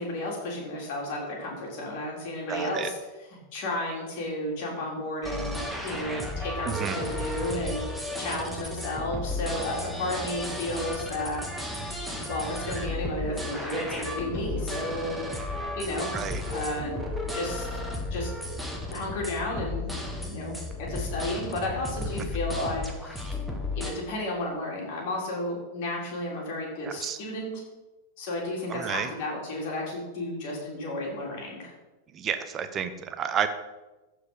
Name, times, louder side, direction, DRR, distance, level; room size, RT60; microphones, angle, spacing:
voice 1, 0.0-3.0 3.3-11.4 12.3-15.3 15.8-16.1 16.5-16.9 17.3-17.7 18.1-18.3 18.9-19.9 20.2-23.4 23.7-27.6 28.2-31.7, left 1 dB, 45° left, -2 dB, 3.7 m, -33 dB
voice 2, 2.5-2.9 6.6-7.0 16.1-16.4 26.8-27.2 28.7-29.1 32.1-33.5, right 8 dB, 25° right, 10 dB, 0.9 m, -30 dB
sound 1, 5.2-23.9, left 2 dB, 5° left, 1.6 m, -34 dB
14.5 x 5.0 x 5.5 m, 1.1 s
figure-of-eight pair, 90°, 0 cm